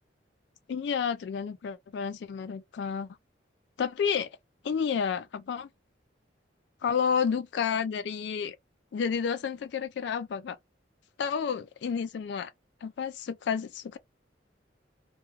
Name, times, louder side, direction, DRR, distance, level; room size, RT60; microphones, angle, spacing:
voice 1, 0.7-3.2 3.8-4.4 4.6-5.7 6.8-8.6 8.9-10.6 11.2-12.5 12.8-14.0, left 6 dB, 65° left, 0.3 m, -30 dB
2.3 x 2.2 x 3.1 m
head